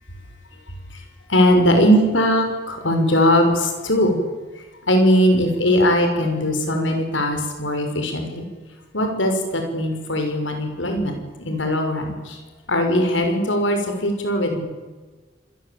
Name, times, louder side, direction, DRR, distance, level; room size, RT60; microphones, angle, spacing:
voice 1, 1.3-4.2 4.8-8.5 8.9-12.4 12.7-14.6, equal, 85° left, 5 dB, 6.2 m, -20 dB
27.0 x 21.5 x 8.7 m, 1.4 s
head